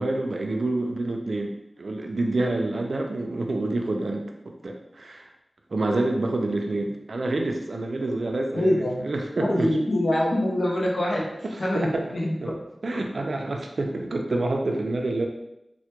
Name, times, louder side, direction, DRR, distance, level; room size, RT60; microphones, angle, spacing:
voice 1, 0.0-5.3 5.7-9.7 11.7-12.1 12.4-12.6 12.8-15.3, right 2 dB, 75° right, 2 dB, 0.3 m, -27 dB
voice 2, 8.5-9.0 9.4-11.3 11.6-12.6 12.9-13.0 13.9-14.0, left 1 dB, 65° left, -3 dB, 0.6 m, -24 dB
2.1 x 2.1 x 2.8 m, 0.86 s
wide cardioid pair, 75°, 0 cm